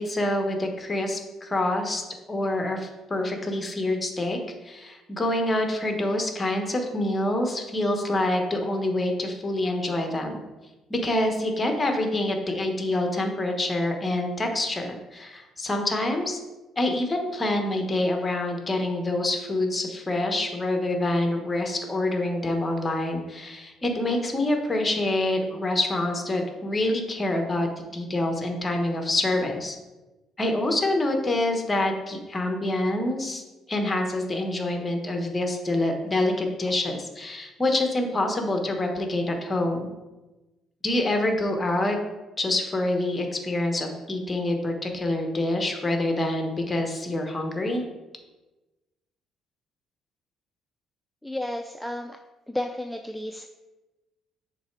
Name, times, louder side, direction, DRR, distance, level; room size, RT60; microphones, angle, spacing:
voice 1, 0.0-2.0 2.3-4.4 4.6-10.4 10.9-16.4 16.8-29.8 30.4-33.4 33.7-39.9 40.8-42.0 42.4-47.8, left 1 dB, 25° left, 3 dB, 1.1 m, -26 dB
voice 2, 51.2-52.2 52.5-53.5, left 1 dB, 5° left, 5 dB, 0.3 m, -32 dB
6.5 x 3.3 x 4.6 m, 1.1 s
supercardioid pair, 80°, 0 cm